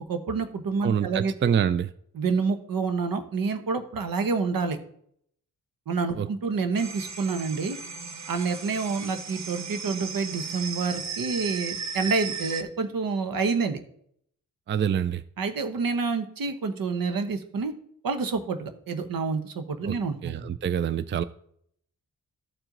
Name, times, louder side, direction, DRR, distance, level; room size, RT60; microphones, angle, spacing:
voice 1, 0.1-1.3 2.1-4.8 5.9-7.8 8.3-13.8 15.4-17.7 18.0-20.4, right 4 dB, 70° right, 1.1 m, -28 dB
voice 2, 0.8-1.9 6.2-6.3 14.7-15.2 19.9-21.2, right 8 dB, 35° right, 0.4 m, -26 dB
sound 1, 6.8-12.6, right 5 dB, 50° right, 1.0 m, -36 dB
13.0 x 4.5 x 3.9 m
cardioid pair, 55°, 35 cm